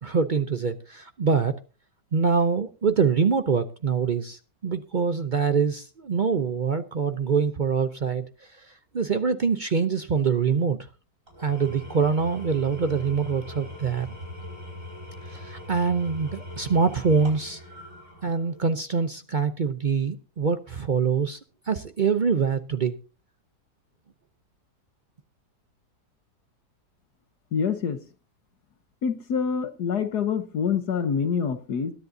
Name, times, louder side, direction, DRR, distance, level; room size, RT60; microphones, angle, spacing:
voice 1, 0.0-1.5 2.1-8.3 8.9-10.8 11.4-14.1 15.2-17.6 18.2-21.4 21.7-22.9, right 5 dB, 70° right, 10 dB, 0.4 m, -24 dB
Engine / Tools, 11.3-18.7, left 1 dB, 45° right, 5.5 m, -41 dB
voice 2, 27.5-28.0 29.0-31.9, left 6 dB, 70° left, 10 dB, 1.6 m, -26 dB
21.5 x 10.5 x 2.7 m, 0.32 s
omnidirectional pair, 1.9 m